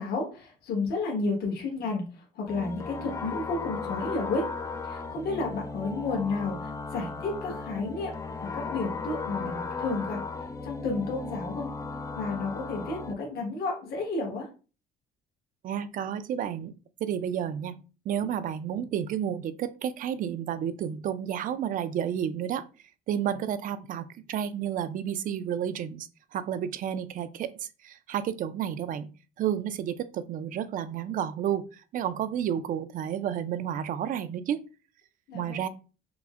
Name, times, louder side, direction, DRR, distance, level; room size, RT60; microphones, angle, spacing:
voice 1, 0.0-4.5 4.8-8.1 8.4-10.2 10.6-11.7 12.1-14.5 35.3-35.6, left 3 dB, 65° left, 0 dB, 1.4 m, -31 dB
sound 1, 2.5-13.1, left 4 dB, 20° left, 0.3 m, -36 dB
voice 2, 15.6-16.7 17.0-17.8 18.1-22.6 23.1-29.1 29.4-34.6 35.3-35.7, right 9 dB, 55° right, 13 dB, 0.4 m, -31 dB
5.9 x 2.1 x 2.4 m, 0.34 s
cardioid pair, 110°, 17 cm